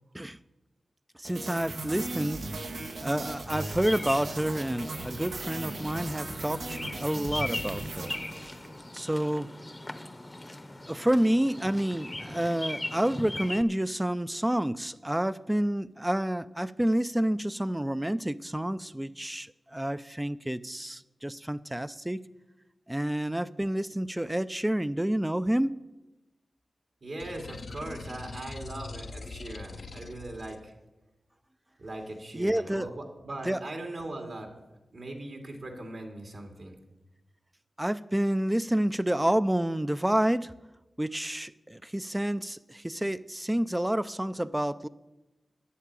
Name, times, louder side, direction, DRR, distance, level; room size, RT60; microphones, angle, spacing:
voice 1, 1.2-2.4 3.0-6.6 7.0-8.1 8.9-9.5 10.9-22.2 22.9-25.7 32.3-32.9 33.5-33.6 37.8-40.5 41.0-44.9, right 1 dB, 15° right, 0.5 m, -29 dB
sound 1, 1.2-8.8, right 2 dB, 85° right, 1.6 m, -38 dB
Bird vocalization bird call bird song, 3.5-13.6, left 1 dB, 25° left, 0.8 m, -39 dB
voice 2, 27.0-30.7 31.8-34.5 34.9-36.8, right 2 dB, 65° right, 2.4 m, -40 dB
sound 2, 27.2-30.6, left 3 dB, 75° left, 0.7 m, -42 dB
10.0 x 8.4 x 7.6 m
cardioid pair, 45°, 0 cm